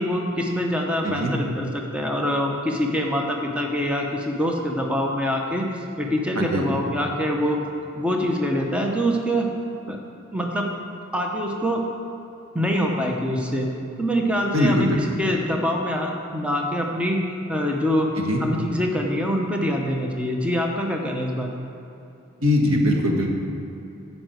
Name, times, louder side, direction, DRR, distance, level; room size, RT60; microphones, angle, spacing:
voice 1, 0.0-5.7 6.0-7.6 8.0-9.5 9.9-10.0 10.3-10.7 11.1-11.8 12.5-13.7 14.0-17.2 17.5-18.1 18.4-21.6, equal, 5° right, 0 dB, 0.8 m, -24 dB
voice 2, 6.3-6.8 14.5-15.2 18.2-18.4 22.4-23.3, left 1 dB, 80° right, 1 dB, 1.5 m, -21 dB
9.6 x 5.4 x 7.8 m, 2.9 s
head